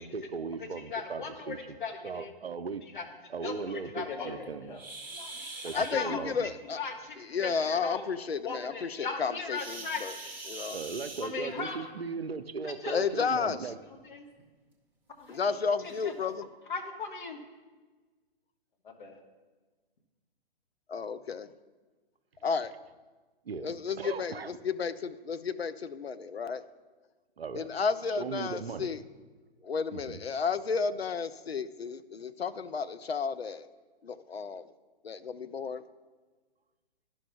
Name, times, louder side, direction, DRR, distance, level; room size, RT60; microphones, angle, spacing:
voice 1, 0.0-1.8 2.0-2.8 3.3-4.8 5.6-6.5 10.7-13.8 23.5-23.7 24.0-24.5 27.4-27.7 28.2-28.9 29.9-30.2, right 5 dB, 80° right, 11 dB, 0.6 m, -38 dB
voice 2, 0.8-1.5 1.8-2.3 2.9-3.1 3.4-4.8 5.1-6.2 6.8-8.1 8.4-10.3 11.2-11.8 12.6-13.0 14.0-14.2 15.2-15.4 15.8-16.1 16.7-17.4 18.8-19.2, left 4 dB, 55° left, 4 dB, 1.2 m, -38 dB
sound 1, 4.7-6.0 9.5-11.7 13.0-13.1 13.7-13.8 14.4-14.5 15.3-15.4 15.8-16.0, right 2 dB, 5° right, 0.5 m, -43 dB
voice 3, 5.7-6.8 7.2-10.1 10.5-10.8 12.9-13.7 15.3-16.5 20.9-21.5 22.4-22.7 23.6-26.6 27.5-29.0 29.6-33.7 34.0-34.7 35.0-35.8, left 5 dB, 85° left, 13 dB, 0.5 m, -32 dB
11.5 x 5.4 x 3.5 m, 1.3 s
figure-of-eight pair, 125°, 30 cm